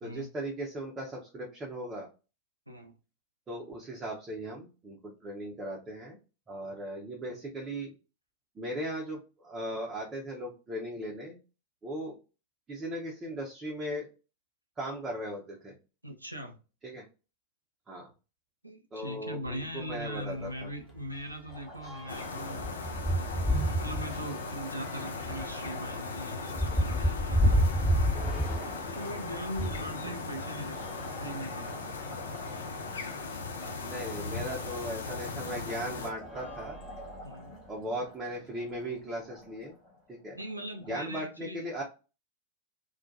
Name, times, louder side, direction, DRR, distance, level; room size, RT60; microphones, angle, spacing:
voice 1, 0.0-2.1 3.5-6.2 6.5-7.9 8.6-11.4 11.8-12.1 12.7-14.1 14.8-15.7 16.8-17.1 17.9-18.1 18.9-20.7 30.0-30.1 33.8-36.8 37.7-39.7 40.1-40.4 40.9-41.8, right 1 dB, 20° right, 0.6 m, -38 dB
voice 2, 16.0-16.6 18.6-22.7 23.4-27.6 28.9-32.1 33.9-34.2 36.4-36.5 37.2-37.5 40.3-41.8, equal, 85° right, 0.4 m, -40 dB
sound 1, 19.5-19.6 20.0-20.2 20.4-29.9 30.6-32.0 32.7-32.8 33.0-33.1 34.8-34.9 35.6-35.8 36.2-37.5, equal, 10° left, 1.0 m, -31 dB
Liquid, 21.5-41.0, equal, 40° left, 1.0 m, -51 dB
sound 2, 22.1-36.1, left 4 dB, 70° left, 0.4 m, -38 dB
2.2 x 2.1 x 2.6 m
figure-of-eight pair, 90°, 0 cm